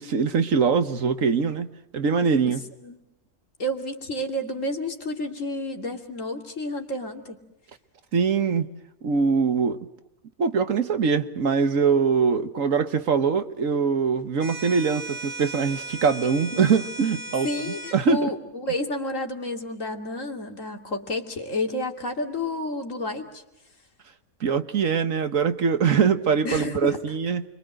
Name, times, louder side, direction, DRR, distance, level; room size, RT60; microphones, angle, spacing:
voice 1, 0.0-1.7 1.9-2.6 8.1-8.7 9.0-9.8 10.4-17.5 17.9-18.3 24.4-27.4, right 5 dB, 70° right, 11 dB, 1.7 m, -22 dB
voice 2, 3.6-7.4 16.5-16.6 17.4-23.4 26.4-27.0, left 1 dB, 65° left, 4 dB, 3.1 m, -30 dB
sound 1, 14.4-18.0, right 2 dB, 40° right, 7.6 m, -36 dB
29.5 x 24.0 x 7.7 m, 0.91 s
omnidirectional pair, 1.4 m